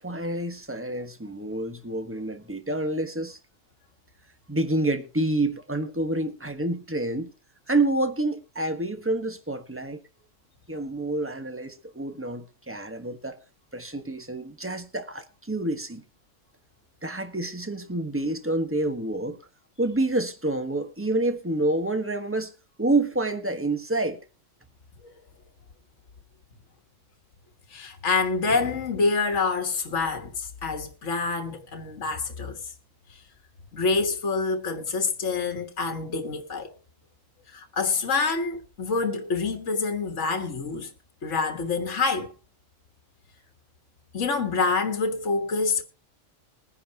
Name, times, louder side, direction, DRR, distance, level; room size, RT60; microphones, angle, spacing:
voice 1, 0.0-3.4 4.5-7.3 7.7-10.0 10.7-13.4 13.7-16.0 17.0-19.4 19.8-22.5 22.8-24.2, right 2 dB, 10° right, 1.3 m, -28 dB
voice 2, 27.7-32.7 33.1-33.2 33.7-36.7 37.5-40.9 41.2-42.3 44.1-45.8, left 4 dB, 70° left, 1.7 m, -27 dB
21.5 x 10.0 x 2.9 m
omnidirectional pair, 1.3 m